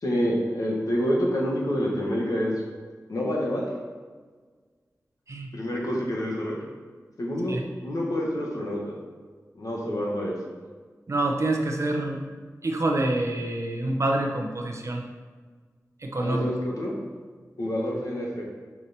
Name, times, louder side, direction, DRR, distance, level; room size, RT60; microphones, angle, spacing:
voice 1, 0.0-2.5 3.1-3.6 5.5-6.6 7.2-7.6 7.8-9.0 9.5-10.4 16.1-16.9 17.6-18.4, equal, 70° left, -3 dB, 1.5 m, -27 dB
voice 2, 11.1-12.2 12.6-15.0 16.0-16.6, right 2 dB, 50° right, 2 dB, 0.9 m, -26 dB
6.0 x 4.7 x 4.2 m, 1.5 s
wide cardioid pair, 70°, 6 cm